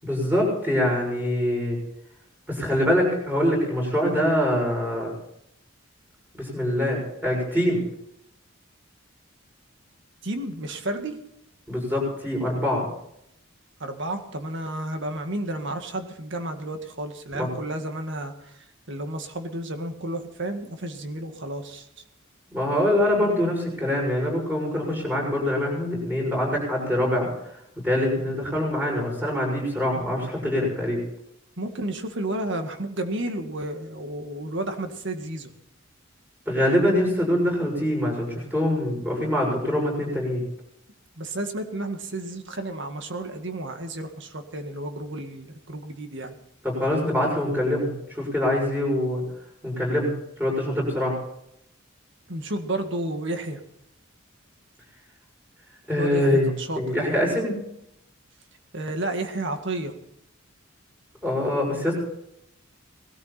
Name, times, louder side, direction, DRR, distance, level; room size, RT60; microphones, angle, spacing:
voice 1, 0.0-1.8 2.5-5.1 6.3-7.8 11.7-12.8 17.3-17.5 22.5-27.3 27.8-31.0 36.5-40.4 46.6-49.2 49.6-50.1 50.4-51.2 55.9-56.5 56.7-57.5 61.2-61.9, left 1 dB, 10° right, -1 dB, 6.8 m, -24 dB
voice 2, 10.2-11.2 13.8-21.9 31.6-35.5 41.2-46.4 52.3-53.6 56.0-56.8 58.7-59.9, right 1 dB, 60° right, 6 dB, 1.9 m, -32 dB
20.0 x 13.0 x 4.4 m, 0.78 s
head